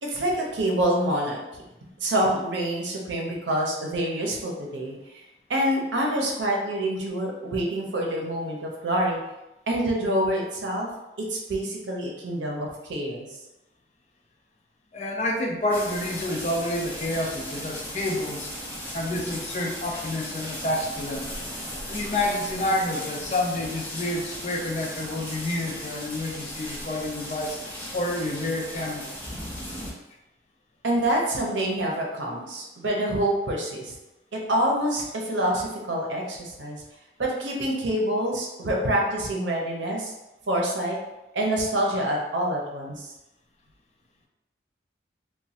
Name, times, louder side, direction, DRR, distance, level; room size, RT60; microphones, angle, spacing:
voice 1, 0.0-1.4 2.0-5.2 5.5-9.2 9.7-10.9 11.2-13.3 30.8-33.9 34.3-36.8 37.2-40.1 40.5-41.0 41.3-43.1, right 1 dB, 85° right, -1 dB, 0.7 m, -26 dB
voice 2, 14.9-18.5 18.9-21.3 21.9-27.6 27.9-29.2, left 1 dB, 40° left, 0 dB, 0.4 m, -29 dB
sound 1, 15.7-29.9, equal, 10° left, 0.7 m, -37 dB
3.0 x 2.2 x 2.7 m, 0.96 s
head